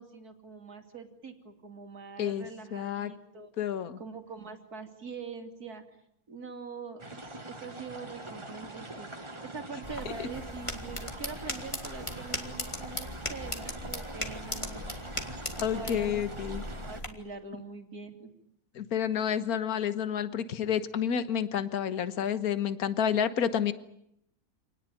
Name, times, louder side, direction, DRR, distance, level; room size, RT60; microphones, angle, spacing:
voice 1, 0.0-3.5 4.0-5.8 6.3-14.9 15.6-16.3 16.8-18.3, right 4 dB, 70° right, 5 dB, 3.2 m, -44 dB
voice 2, 2.2-3.1 3.6-4.0 10.2-10.3 15.6-16.6 18.7-23.7, left 8 dB, 65° left, 12 dB, 1.7 m, -30 dB
sound 1, 7.0-17.0, right 2 dB, 20° right, 1.5 m, -44 dB
sound 2, 9.8-17.1, left 1 dB, 20° left, 2.6 m, -38 dB
27.5 x 19.5 x 9.3 m, 0.75 s
omnidirectional pair, 1.7 m